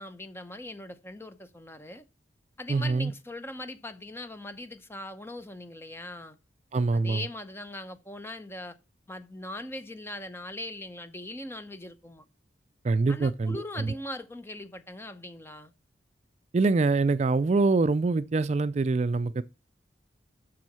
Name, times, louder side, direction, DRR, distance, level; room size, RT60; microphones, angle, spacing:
voice 1, 0.0-2.0 2.6-6.4 6.9-8.8 9.1-12.2 13.1-15.7, left 1 dB, 15° left, 0.7 m, -40 dB
voice 2, 2.7-3.1 6.7-7.2 12.8-13.9 16.5-19.4, right 3 dB, 35° right, 0.3 m, -25 dB
7.6 x 6.2 x 5.5 m
head